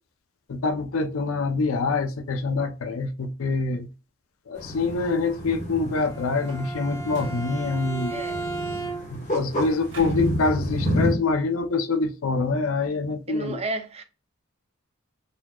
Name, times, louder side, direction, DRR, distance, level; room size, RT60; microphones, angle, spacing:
voice 1, 0.5-3.9 4.5-8.2 9.1-13.6, left 3 dB, 85° left, 0.5 m, -25 dB
sound 1, 4.5-11.1, equal, 35° left, 1.2 m, -30 dB
Bowed string instrument, 5.9-9.3, right 3 dB, 15° left, 0.7 m, -35 dB
sound 2, 6.3-6.8 7.1-7.5 9.9-10.4, right 2 dB, 65° right, 1.7 m, -44 dB
voice 2, 8.1-8.5 13.3-14.0, right 3 dB, 30° right, 0.5 m, -32 dB
4.0 x 2.9 x 2.3 m
head